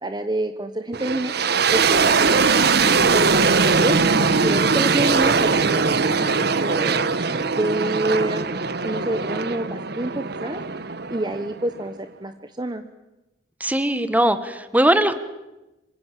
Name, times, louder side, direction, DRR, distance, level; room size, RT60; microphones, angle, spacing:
voice 1, 0.0-4.0 4.4-7.1 7.5-10.6 11.1-12.8, right 1 dB, 25° right, 8 dB, 1.1 m, -28 dB
sound 1, 0.9-11.9, right 4 dB, 60° right, 1.2 m, -21 dB
voice 2, 4.0-4.3 13.6-15.2, right 1 dB, 10° right, 11 dB, 1.6 m, -20 dB
26.5 x 24.5 x 7.6 m, 0.99 s
head